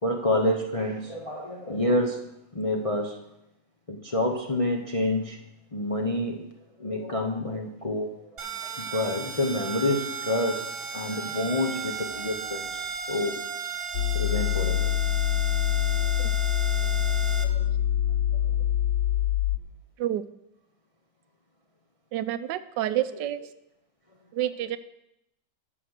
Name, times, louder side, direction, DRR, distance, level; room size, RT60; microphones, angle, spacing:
voice 1, 0.0-2.2 2.5-3.2 3.9-5.4 5.7-6.5 6.8-8.1 8.8-10.7 10.9-12.8 13.1-13.4 14.1-14.9 16.0-16.1 16.8-17.1 17.4-17.7, left 1 dB, 30° left, 2 dB, 0.6 m, -28 dB
sound 1, 8.4-17.4, right 5 dB, 35° right, 1.4 m, -35 dB
sound 2, 13.9-19.6, left 12 dB, 85° left, 1.4 m, -25 dB
voice 2, 22.1-23.4 24.3-24.8, right 12 dB, 85° right, 13 dB, 1.3 m, -28 dB
11.0 x 6.7 x 6.4 m, 0.84 s
omnidirectional pair, 1.9 m